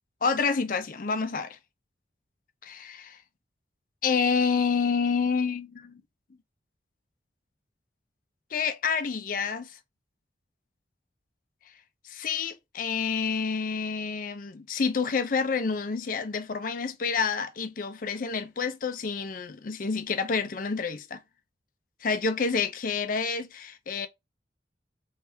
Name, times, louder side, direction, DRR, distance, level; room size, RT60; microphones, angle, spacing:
voice 1, 0.2-1.6 2.6-3.2 4.0-6.0 8.5-9.8 12.0-21.2 22.0-24.1, left 5 dB, 45° left, 0.5 m, -28 dB
3.4 x 3.2 x 2.7 m
head